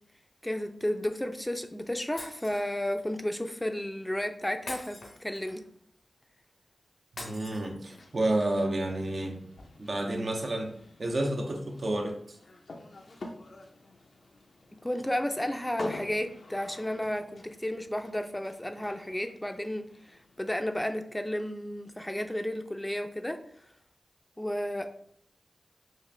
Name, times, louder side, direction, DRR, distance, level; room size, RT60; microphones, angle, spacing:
voice 1, 0.4-5.6 14.7-23.4 24.4-24.9, left 1 dB, 15° left, 7 dB, 0.4 m, -32 dB
Shatter, 2.2-3.1 4.7-5.8 7.2-8.2, left 2 dB, 85° left, 0.9 m, -44 dB
voice 2, 7.2-9.4 9.8-12.4, right 1 dB, 60° right, 2 dB, 0.5 m, -30 dB
sound 1, 7.9-20.8, left 2 dB, 70° left, 0.5 m, -48 dB
3.7 x 2.5 x 3.2 m, 0.63 s
cardioid pair, 55°, 0 cm